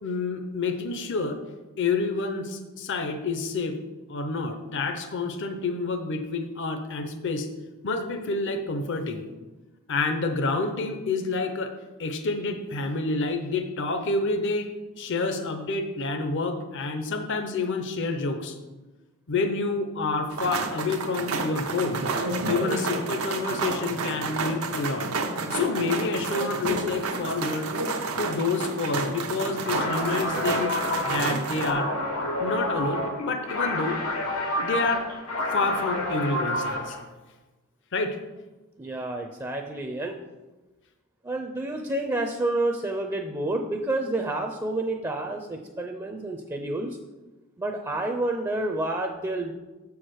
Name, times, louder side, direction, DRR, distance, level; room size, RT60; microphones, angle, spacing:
voice 1, 0.0-1.4 1.8-3.8 4.1-7.5 7.8-9.2 9.9-11.7 12.0-18.6 19.3-22.1 22.5-25.1 25.5-27.7 28.2-30.7 31.0-31.9 32.4-34.0 34.6-35.1 35.5-37.0 37.9-38.2, left 3 dB, 60° left, 6 dB, 0.7 m, -28 dB
sound 1, 20.3-31.7, right 3 dB, 85° right, 0.8 m, -30 dB
sound 2, 29.6-37.0, left 1 dB, 90° left, 1.6 m, -29 dB
voice 2, 38.8-40.2 41.2-46.9 47.6-49.5, right 2 dB, 15° right, 3 dB, 0.5 m, -29 dB
6.8 x 4.7 x 6.3 m, 1.2 s
head